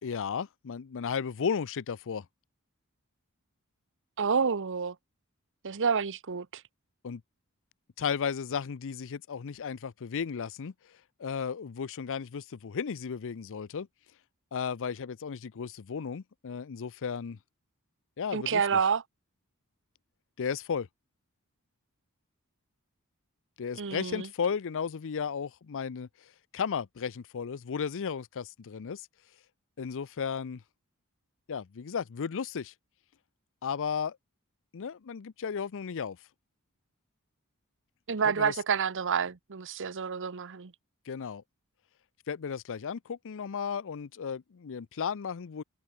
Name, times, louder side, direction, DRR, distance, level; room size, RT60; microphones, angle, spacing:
voice 1, 0.0-2.3 7.0-7.2 8.0-10.7 11.2-13.9 14.5-17.4 18.2-18.8 20.4-20.9 23.6-29.1 29.8-30.6 31.5-32.7 33.6-34.2 34.7-36.2 38.4-38.5 41.1-41.4 42.3-45.6, left 6 dB, 60° left, 0.5 m, -34 dB
voice 2, 4.2-4.9 5.6-6.6 18.3-19.0 23.8-24.3 38.1-40.7, right 6 dB, 60° right, 0.9 m, -28 dB
head